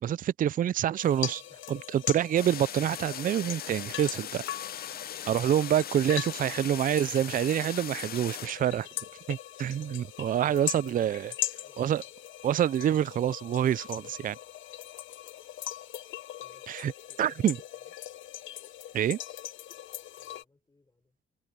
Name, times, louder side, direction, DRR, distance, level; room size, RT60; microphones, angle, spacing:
voice 1, 0.0-1.4 1.7-4.4 5.2-8.9 9.3-11.3 11.8-12.0 12.4-14.4 16.7-16.9 17.2-17.6 18.9-19.2, right 10 dB, 45° right, 0.4 m, -27 dB
sound 1, 1.0-20.4, left 13 dB, 75° left, 0.9 m, -40 dB
voice 2, 1.3-2.1 10.7-12.2 16.4-18.0 20.1-21.2, left 2 dB, 20° left, 6.7 m, -63 dB
sound 2, 2.4-8.5, left 10 dB, 50° left, 0.6 m, -39 dB
cardioid pair, 90°, 20 cm